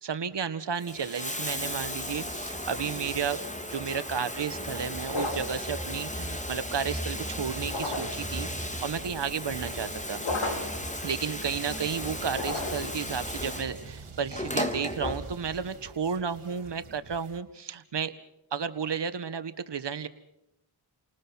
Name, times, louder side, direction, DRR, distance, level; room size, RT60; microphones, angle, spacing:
voice 1, 0.0-3.4 3.7-10.2 11.0-18.1 18.5-20.1, right 6 dB, 55° right, 11 dB, 1.5 m, -33 dB
Bathtub (filling or washing), 0.7-15.7 16.8-16.9, left 1 dB, 15° left, 2.8 m, -35 dB
sound 1, 5.1-5.6 7.6-8.3 10.2-10.8 12.3-13.0, left 2 dB, 65° left, 4.1 m, -33 dB
sound 2, 7.1-17.4, right 4 dB, 75° right, 2.3 m, -47 dB
29.0 x 19.5 x 5.8 m, 0.86 s
cardioid pair, 40°, 49 cm